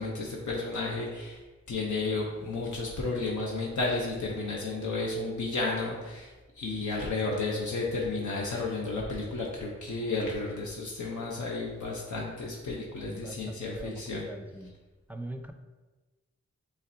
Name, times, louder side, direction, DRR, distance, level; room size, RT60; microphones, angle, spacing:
voice 1, 0.0-1.4 1.7-14.3, left 3 dB, 85° left, -3 dB, 0.7 m, -32 dB
voice 2, 13.0-14.7 15.1-15.5, right 1 dB, 5° right, 6 dB, 0.4 m, -42 dB
5.6 x 3.2 x 2.6 m, 1.2 s
cardioid pair, 45°, 29 cm